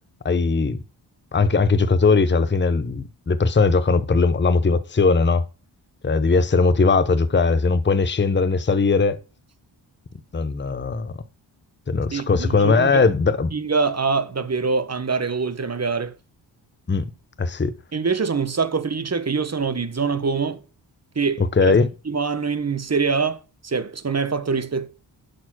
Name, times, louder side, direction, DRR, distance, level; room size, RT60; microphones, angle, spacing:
voice 1, 0.2-0.8 1.3-5.4 6.0-9.2 10.3-11.1 11.9-13.5 16.9-17.0 17.4-17.7 21.6-21.9, left 4 dB, 25° left, 0.9 m, -19 dB
voice 2, 12.1-13.0 13.5-16.1 17.9-20.6 21.1-21.7 22.1-24.9, right 5 dB, 35° right, 1.2 m, -24 dB
11.5 x 4.2 x 6.2 m
cardioid pair, 50°, 47 cm